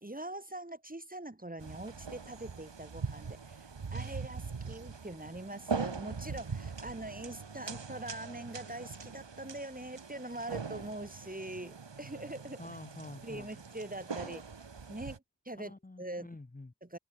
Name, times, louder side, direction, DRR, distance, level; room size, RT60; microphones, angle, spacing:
voice 1, 0.0-12.6 13.2-14.4 14.9-16.3 16.8-17.0, right 1 dB, 20° right, 2.1 m, -43 dB
sound 1, 1.6-15.2, right 5 dB, 75° right, 2.0 m, -42 dB
voice 2, 12.6-13.5 14.2-14.4 15.6-16.7, left 2 dB, 20° left, 1.0 m, -48 dB
wide cardioid pair, 70°, 44 cm